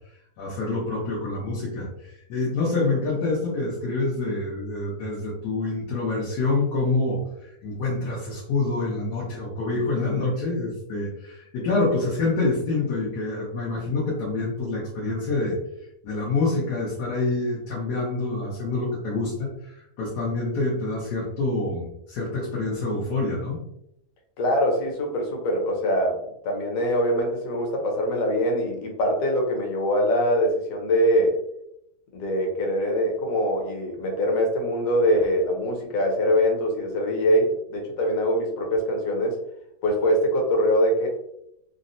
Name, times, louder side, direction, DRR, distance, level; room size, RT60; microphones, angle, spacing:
voice 1, 0.4-1.9 2.3-15.6 16.0-23.6, left 3 dB, 85° left, -5 dB, 1.4 m, -26 dB
voice 2, 24.4-31.3 32.1-39.4 39.8-41.1, equal, 65° left, 1 dB, 1.1 m, -23 dB
3.9 x 2.0 x 2.5 m, 0.78 s
omnidirectional pair, 1.7 m